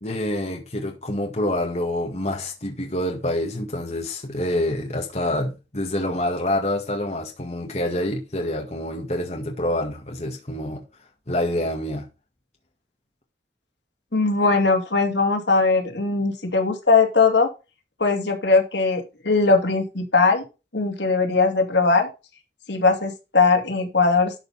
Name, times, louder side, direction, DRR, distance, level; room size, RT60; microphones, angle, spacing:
voice 1, 0.0-10.8 11.3-12.1, left 1 dB, 35° left, 1.8 m, -27 dB
voice 2, 14.1-17.5 18.0-20.5 20.7-22.1 22.7-24.4, left 4 dB, 75° left, 2.5 m, -20 dB
12.0 x 5.4 x 4.2 m
head